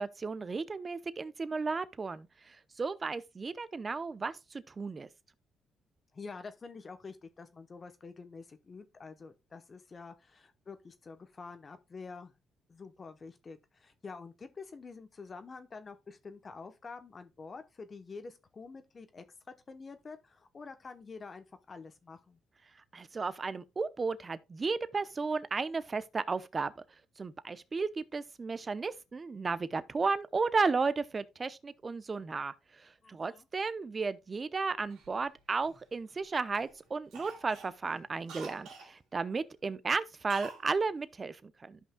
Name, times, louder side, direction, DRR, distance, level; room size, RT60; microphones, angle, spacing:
voice 1, 0.0-5.1 22.9-26.7 27.2-32.5 32.8-41.8, right 4 dB, 30° right, 0.7 m, -34 dB
voice 2, 6.1-12.3 12.7-22.4 33.0-33.5, left 4 dB, 35° left, 0.9 m, -48 dB
Cough, 34.9-36.2 36.5-36.8 37.1-38.9 40.3-40.7 40.9-41.0, right 4 dB, 90° right, 2.8 m, -48 dB
13.5 x 5.5 x 2.3 m
cardioid pair, 90°, 0 cm